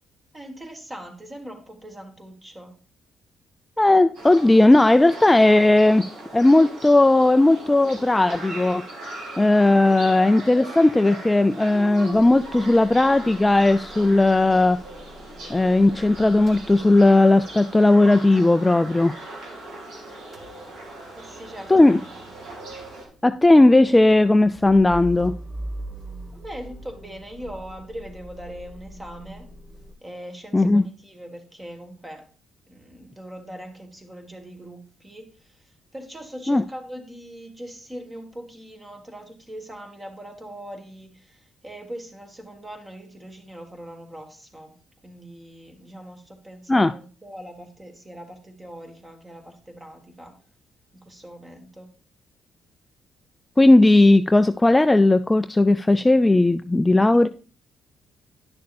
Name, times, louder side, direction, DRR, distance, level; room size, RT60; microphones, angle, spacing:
voice 1, 0.3-2.8 19.9-20.3 21.2-22.4 26.3-29.5 30.0-32.2 32.7-44.7 45.0-50.3 50.9-51.9 57.1-57.3, equal, 20° right, 4 dB, 1.8 m, -41 dB
voice 2, 3.8-6.1 6.3-8.8 9.4-14.8 15.5-19.1 21.7-22.0 23.2-25.3 30.5-30.9 36.5-36.6 46.7-46.9 53.6-57.3, left 2 dB, 15° left, 10 dB, 0.3 m, -16 dB
sound 1, 4.1-23.0, right 2 dB, 75° right, 2.7 m, -39 dB
Motor vehicle (road) / Engine starting / Idling, 12.1-19.8 20.1-29.9, right 1 dB, 35° right, 1.5 m, -42 dB
10.5 x 6.5 x 2.6 m, 0.37 s
cardioid pair, 90°, 0 cm